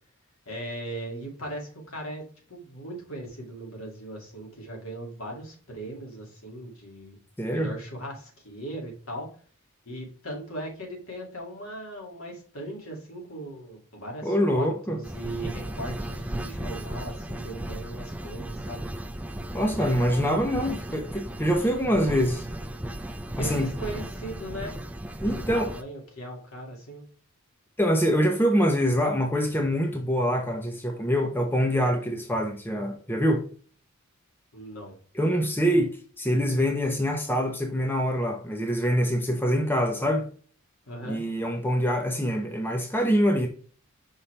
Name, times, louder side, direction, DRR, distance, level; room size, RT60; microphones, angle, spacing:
voice 1, 0.5-7.2 7.5-9.3 9.8-18.9 19.8-20.6 20.9-21.1 21.8-22.3 23.3-24.7 25.3-27.1 34.5-35.0 40.9-41.2, right 1 dB, 70° left, 2.3 m, -38 dB
voice 2, 7.4-7.7 14.2-15.0 19.5-22.4 23.4-23.7 25.2-25.7 27.8-33.4 35.1-40.3 41.1-43.5, equal, 10° left, 0.7 m, -25 dB
sound 1, 15.0-25.8, right 1 dB, 5° right, 0.4 m, -35 dB
5.7 x 5.5 x 3.3 m
head